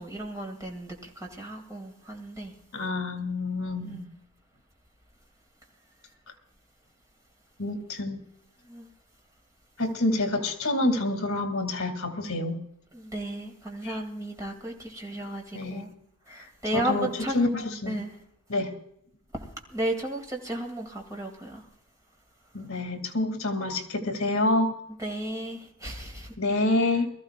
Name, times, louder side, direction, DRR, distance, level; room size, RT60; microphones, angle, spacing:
voice 1, 0.0-2.5 3.8-4.1 8.7-8.9 12.9-15.9 16.3-17.5 17.9-18.1 19.3-21.6 25.0-26.3, right 1 dB, 15° right, 2.3 m, -34 dB
voice 2, 2.7-4.0 7.6-8.2 9.8-12.6 13.8-14.0 15.5-15.8 16.3-16.4 16.7-18.0 18.5-18.7 22.5-24.7 26.4-27.1, left 2 dB, 70° left, 2.3 m, -27 dB
23.0 x 14.0 x 2.5 m
head